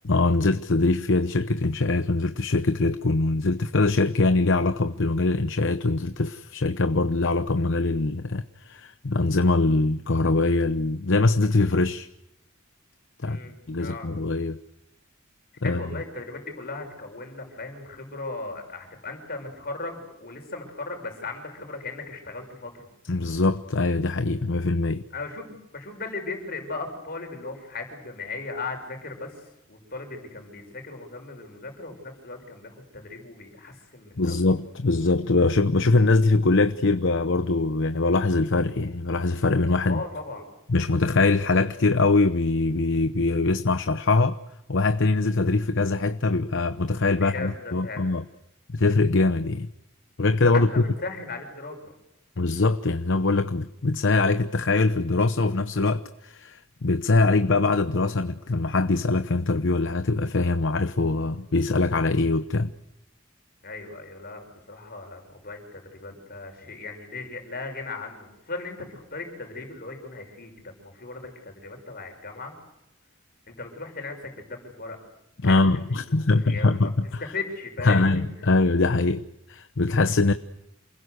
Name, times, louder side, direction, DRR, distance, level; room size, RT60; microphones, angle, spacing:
voice 1, 0.0-12.1 13.2-13.4 13.7-14.6 15.6-15.8 23.1-25.0 34.2-40.0 40.7-44.4 44.7-48.2 48.7-49.7 50.2-50.8 52.4-62.7 75.4-77.2 77.8-78.2 78.5-80.3, left 3 dB, 65° left, 0.9 m, -23 dB
voice 2, 13.2-14.1 15.6-22.9 25.1-34.3 39.8-40.4 47.1-48.1 50.7-51.9 63.6-72.5 73.5-75.0 75.4-76.9 77.2-78.3, left 3 dB, 50° left, 6.6 m, -37 dB
28.5 x 21.0 x 8.1 m
head